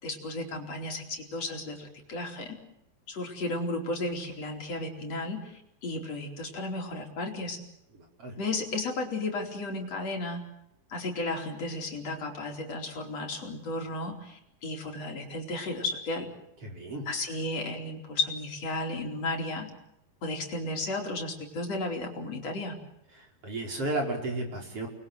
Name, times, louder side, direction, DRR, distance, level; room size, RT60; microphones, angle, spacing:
voice 1, 0.0-2.6 3.1-7.6 8.4-10.4 10.9-16.3 17.1-19.7 20.2-22.7, left 2 dB, 40° left, 2 dB, 5.2 m, -34 dB
voice 2, 16.6-17.1 23.4-24.9, right 2 dB, 35° right, 2 dB, 6.0 m, -32 dB
29.5 x 22.5 x 8.0 m, 0.80 s
omnidirectional pair, 4.5 m